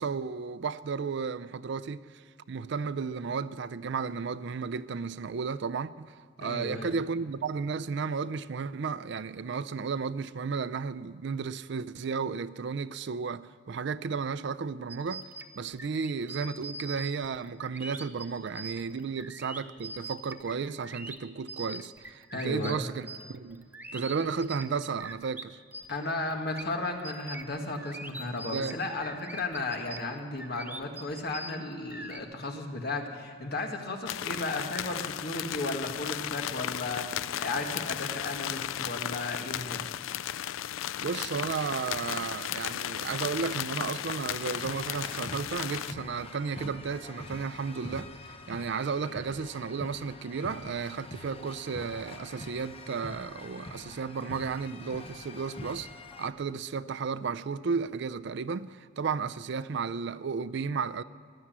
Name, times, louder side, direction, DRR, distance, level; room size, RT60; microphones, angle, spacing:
voice 1, 0.0-2.2 2.5-15.2 15.6-25.6 28.5-28.8 41.0-55.9 56.2-61.0, right 5 dB, 60° right, 0.4 m, -33 dB
voice 2, 6.4-6.9 22.3-22.8 25.9-39.8, left 2 dB, 55° left, 1.8 m, -34 dB
sound 1, 14.9-25.4 25.7-32.2, right 2 dB, 10° right, 0.6 m, -43 dB
sound 2, 34.1-45.9, left 11 dB, 85° left, 0.4 m, -35 dB
sound 3, 44.4-56.3, left 2 dB, 30° left, 0.8 m, -45 dB
15.5 x 11.5 x 7.4 m
head